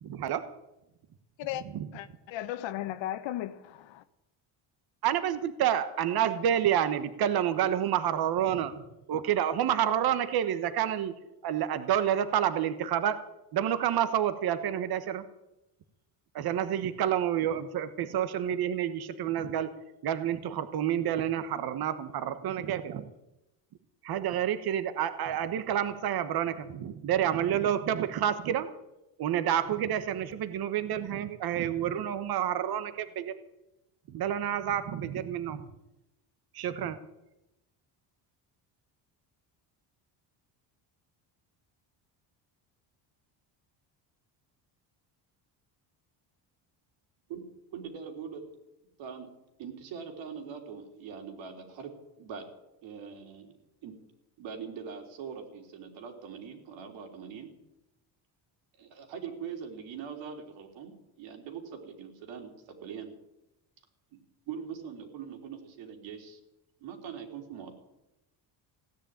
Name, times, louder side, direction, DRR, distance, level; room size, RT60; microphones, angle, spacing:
voice 1, 0.0-0.4 1.7-1.9 5.0-8.7 9.1-11.1 11.4-13.1 13.5-15.2 16.3-19.7 20.0-23.1 24.0-28.7 29.2-33.3 34.1-35.7 36.5-37.0, right 10 dB, 50° right, 1.3 m, -29 dB
voice 2, 1.9-4.0, left 13 dB, 75° left, 1.2 m, -36 dB
voice 3, 47.3-48.4 49.0-49.3 49.6-51.9 52.2-52.5 52.8-53.5 53.8-54.0 54.4-57.5 58.8-63.1 64.5-66.4 66.8-67.8, right 7 dB, 75° right, 3.4 m, -42 dB
16.5 x 10.0 x 8.8 m
cardioid pair, 130°, 46 cm